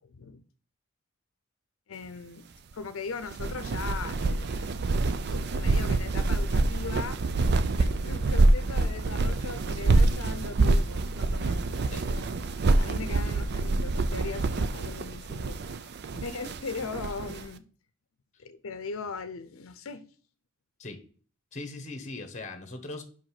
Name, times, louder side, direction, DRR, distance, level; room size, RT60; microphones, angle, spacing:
voice 1, 0.1-0.4 1.9-2.5 2.7-4.7 5.3-7.2 7.8-15.6 16.2-17.7 18.4-20.0, left 4 dB, 90° left, 0.6 m, -39 dB
sound 1, 3.2-17.4, right 2 dB, 55° right, 0.5 m, -26 dB
voice 2, 21.5-23.0, left 2 dB, 35° left, 1.2 m, -40 dB
5.4 x 5.1 x 5.7 m
head